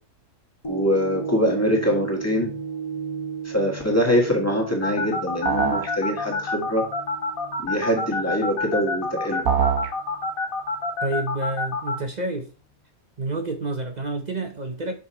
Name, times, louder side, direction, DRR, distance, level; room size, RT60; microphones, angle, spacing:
sound 1, 0.6-9.0 9.5-9.6, right 6 dB, 35° left, 0.5 m, -35 dB
voice 1, 0.7-2.5 3.4-6.9 7.6-9.4, equal, 10° left, 1.5 m, -23 dB
sound 2, 4.8-11.9, left 3 dB, 70° left, 1.8 m, -27 dB
sound 3, 5.5-5.9 9.5-9.9, right 7 dB, 85° right, 1.5 m, -22 dB
voice 2, 11.0-12.5 13.2-14.9, right 2 dB, 40° right, 0.6 m, -29 dB
6.1 x 4.8 x 4.3 m
omnidirectional pair, 1.5 m